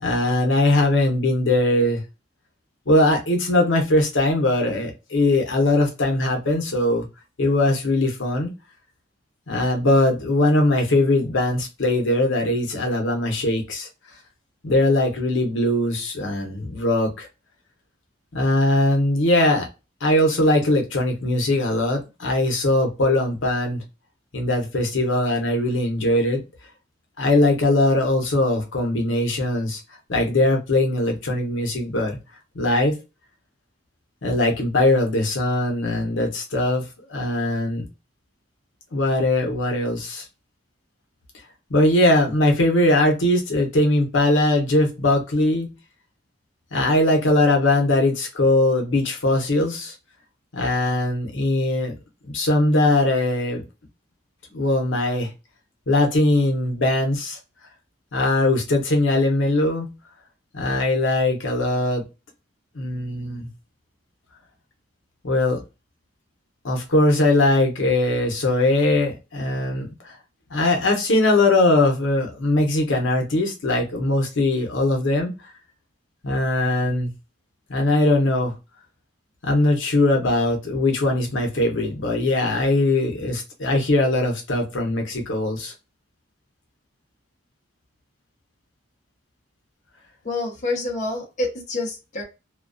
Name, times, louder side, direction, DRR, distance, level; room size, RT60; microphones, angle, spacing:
voice 1, 0.0-2.0 2.9-7.1 7.4-8.5 9.5-13.9 14.6-17.3 18.3-19.7 20.0-23.8 24.3-26.4 27.2-29.8 30.1-32.2 32.5-32.9 34.2-37.8 38.9-40.2 41.7-45.7 46.7-49.9 50.5-51.9 52.2-53.6 54.5-55.3 55.9-57.4 58.1-59.9 60.5-62.0 62.7-63.5 65.2-65.6 66.6-70.2 70.5-75.3 76.2-77.1 77.7-78.5 79.4-85.7, left 1 dB, 90° left, 0.8 m, -20 dB
voice 2, 90.2-92.2, left 2 dB, 40° left, 0.6 m, -27 dB
2.3 x 2.3 x 2.4 m
head